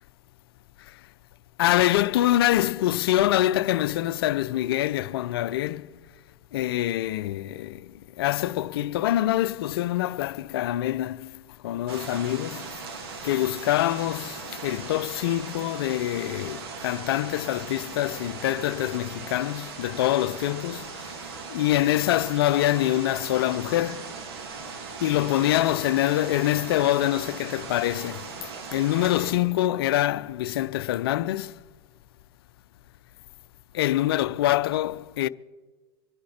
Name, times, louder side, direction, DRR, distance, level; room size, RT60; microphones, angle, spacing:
voice 1, 1.6-5.9 6.5-12.8 13.2-24.1 25.0-28.3 28.7-31.6 33.7-35.3, left 14 dB, 65° left, 0.6 m, -25 dB
sound 1, 11.9-29.3, right 5 dB, 70° right, 2.6 m, -39 dB
24.5 x 10.5 x 4.3 m
hypercardioid pair, 95°, 13 cm